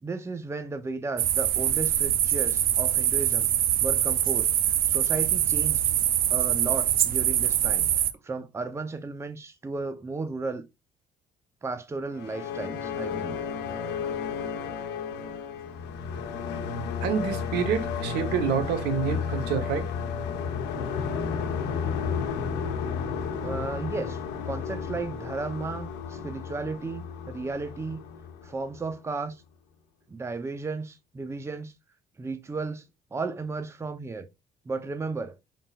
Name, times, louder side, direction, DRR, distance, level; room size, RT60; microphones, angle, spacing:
voice 1, 0.0-3.5 3.8-5.8 6.3-7.9 8.2-10.6 11.6-13.4 23.4-28.0 28.4-29.4 30.1-31.7 32.2-32.8 33.1-34.3 34.7-35.4, right 3 dB, 15° right, 0.6 m, -34 dB
sound 1, 1.2-8.1, right 11 dB, 60° right, 0.5 m, -24 dB
sound 2, 12.1-29.0, left 6 dB, 85° left, 0.8 m, -32 dB
voice 2, 17.0-19.9, right 6 dB, 85° right, 1.0 m, -27 dB
5.4 x 3.8 x 2.4 m
cardioid pair, 110°, 17 cm